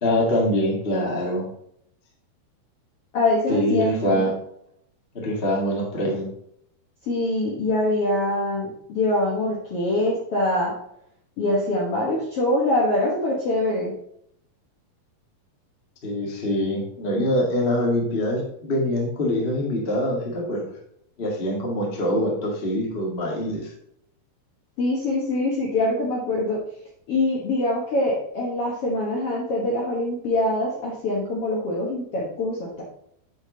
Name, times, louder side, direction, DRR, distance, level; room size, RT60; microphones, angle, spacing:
voice 1, 0.0-1.4 3.5-4.3 5.1-6.2 16.0-20.7 21.2-23.7, left 1 dB, 35° left, -2 dB, 0.8 m, -24 dB
voice 2, 3.1-4.3 7.1-10.7 11.4-13.9 24.8-26.6 27.1-32.8, left 1 dB, 60° left, -3 dB, 1.5 m, -24 dB
8.0 x 6.3 x 3.9 m, 0.72 s
omnidirectional pair, 4.4 m